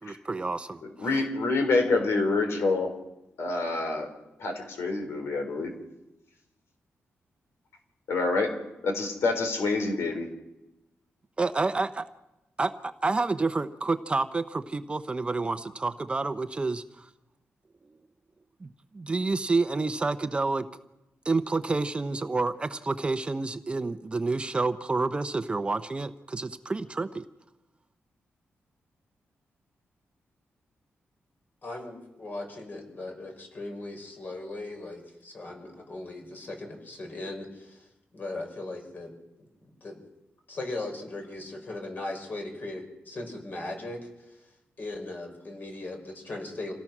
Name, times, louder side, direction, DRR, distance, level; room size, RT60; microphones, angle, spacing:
voice 1, 0.0-1.2 11.4-12.0 12.6-12.7 13.0-17.1 18.6-20.7 21.2-27.2, right 3 dB, 25° right, 10 dB, 0.8 m, -29 dB
voice 2, 0.8-3.0 3.4-4.1 4.4-5.7 8.1-8.5 8.8-10.3, left 3 dB, 80° left, 5 dB, 4.1 m, -27 dB
voice 3, 31.6-37.8 38.1-39.1 39.8-40.0 40.5-44.1 44.8-46.7, left 2 dB, 45° left, 3 dB, 5.7 m, -38 dB
27.5 x 18.0 x 6.1 m, 0.96 s
wide cardioid pair, 130°, 4 cm